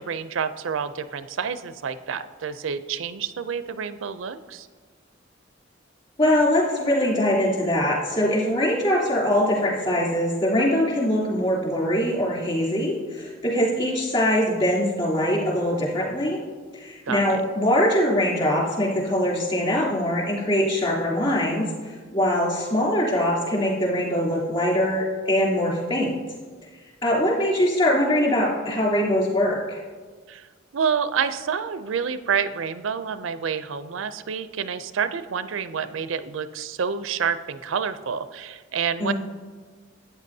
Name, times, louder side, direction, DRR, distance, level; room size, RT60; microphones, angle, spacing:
voice 1, 0.0-4.7 17.1-17.4 30.3-30.5 30.7-39.1, right 6 dB, 85° right, 12 dB, 0.4 m, -28 dB
voice 2, 6.2-16.4 16.7-26.2 27.0-29.8 39.0-39.1, left 1 dB, 35° left, -6 dB, 3.1 m, -22 dB
13.0 x 9.0 x 2.7 m, 1.5 s
head